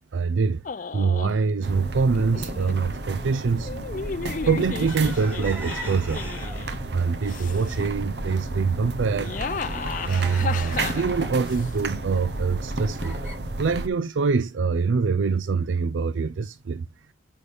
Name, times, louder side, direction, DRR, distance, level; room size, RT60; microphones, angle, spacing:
voice 1, 0.1-0.6 0.9-3.7 4.4-6.3 6.9-9.3 10.0-13.2 13.6-16.9, right 5 dB, 85° right, 0.5 m, -24 dB
sound 1, 0.7-1.4 2.1-2.8 3.6-6.8 7.2-7.9 9.0-11.7, left 5 dB, 45° left, 0.4 m, -34 dB
sound 2, 1.6-13.9, right 2 dB, 60° right, 0.9 m, -32 dB
sound 3, 4.8-6.9 7.3-7.9 8.3-8.4 8.7-13.4, right 1 dB, 10° right, 3.9 m, -41 dB
8.5 x 5.4 x 3.3 m
head